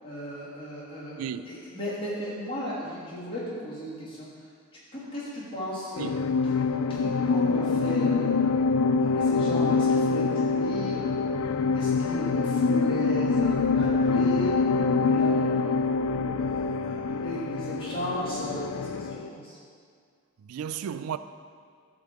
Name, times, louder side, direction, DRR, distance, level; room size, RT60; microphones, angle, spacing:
voice 1, 0.0-1.2 1.5-4.3 4.9-6.1 6.9-8.5 9.0-11.3 11.7-14.6 15.0-16.0 16.3-19.6, equal, 25° left, 2.6 m, -36 dB
sound 1, 6.0-19.3, left 4 dB, 75° left, 0.4 m, -25 dB
voice 2, 20.4-21.2, right 8 dB, 90° right, 0.3 m, -33 dB
10.5 x 3.8 x 7.2 m
head